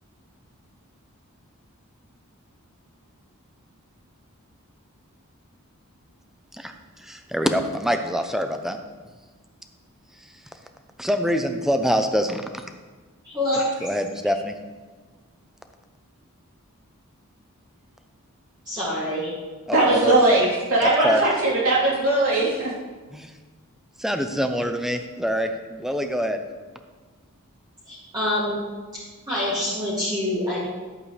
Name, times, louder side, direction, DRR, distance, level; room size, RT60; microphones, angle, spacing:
voice 1, 7.0-8.8 11.0-12.6 13.8-14.5 19.7-20.2 20.8-21.3 23.1-23.3 24.0-26.4, equal, ahead, 6 dB, 0.5 m, -25 dB
voice 2, 13.2-13.6 18.7-19.3 19.8-20.0 27.9-28.6 28.9-30.6, left 1 dB, 20° right, -11 dB, 2.4 m, -26 dB
voice 3, 19.7-20.4 20.7-22.7, right 2 dB, 70° right, -7 dB, 3.4 m, -19 dB
11.5 x 8.4 x 3.2 m, 1.4 s
head